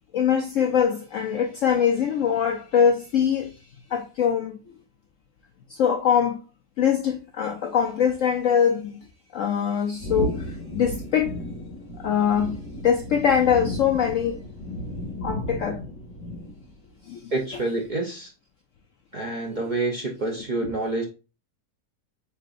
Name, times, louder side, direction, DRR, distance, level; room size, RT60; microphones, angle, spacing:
voice 1, 0.1-3.5 3.9-4.6 5.7-6.4 6.8-9.0 9.3-11.4 12.0-14.4 15.2-15.8 17.0-17.3, left 8 dB, 75° left, 0.7 m, -23 dB
sound 1, 10.0-16.8, equal, 45° left, 1.8 m, -34 dB
voice 2, 17.3-18.3 19.1-21.0, right 2 dB, 90° right, 0.4 m, -27 dB
5.5 x 3.7 x 2.5 m
omnidirectional pair, 1.9 m